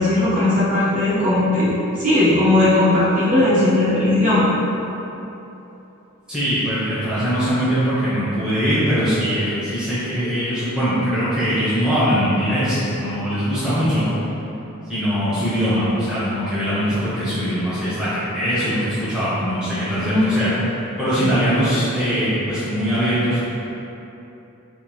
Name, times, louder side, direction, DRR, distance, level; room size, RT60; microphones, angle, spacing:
voice 1, 0.0-4.5 20.0-20.7 21.2-21.3, left 1 dB, 35° right, -12 dB, 1.1 m, -18 dB
voice 2, 6.3-14.1 14.9-20.5 21.0-23.4, equal, 5° right, -14 dB, 1.0 m, -21 dB
3.7 x 3.2 x 3.2 m, 3.0 s
head